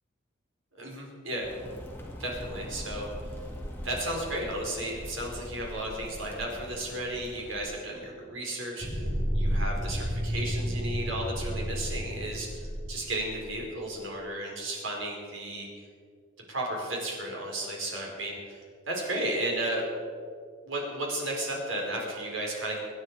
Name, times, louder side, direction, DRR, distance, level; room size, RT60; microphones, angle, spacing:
voice 1, 0.8-1.5 2.2-3.1 3.8-9.1 9.3-15.7 16.5-19.8 20.6-22.8, right 1 dB, 85° right, -1 dB, 4.5 m, -34 dB
sound 1, 1.4-7.6, equal, 10° left, 2.0 m, -42 dB
sound 2, 8.8-13.6, equal, 10° right, 4.6 m, -31 dB
25.0 x 9.9 x 4.9 m, 2.1 s
head